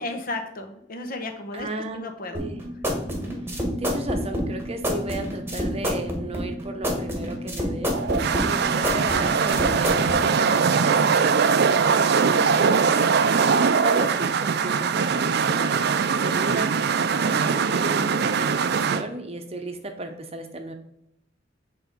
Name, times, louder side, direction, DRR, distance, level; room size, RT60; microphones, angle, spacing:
voice 1, 0.0-2.4 3.1-3.4 12.3-12.6, left 2 dB, 50° left, 5 dB, 1.0 m, -34 dB
voice 2, 1.5-2.0 2.3-2.6 3.8-13.0 13.3-20.7, right 2 dB, 30° right, 5 dB, 0.8 m, -35 dB
sound 1, 2.3-10.2, equal, 10° right, 1.4 m, -27 dB
sound 2, 7.9-19.0, right 5 dB, 55° right, 0.5 m, -21 dB
8.0 x 3.5 x 5.0 m, 0.78 s
head